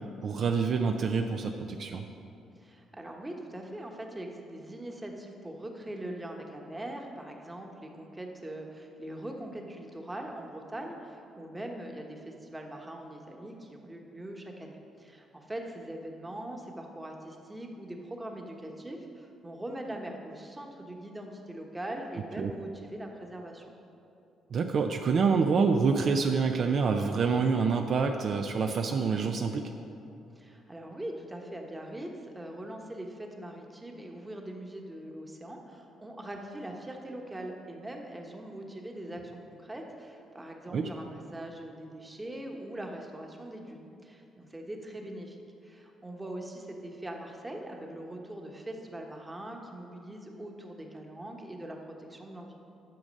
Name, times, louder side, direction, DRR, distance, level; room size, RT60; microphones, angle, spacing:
voice 1, 0.2-2.0 22.4-22.5 24.5-29.6 40.7-40.9, right 5 dB, 50° right, 4 dB, 0.5 m, -27 dB
voice 2, 2.6-23.8 30.3-52.5, right 1 dB, 15° right, 2 dB, 1.1 m, -42 dB
10.5 x 6.4 x 5.3 m, 2.7 s
cardioid pair, 120°, 0 cm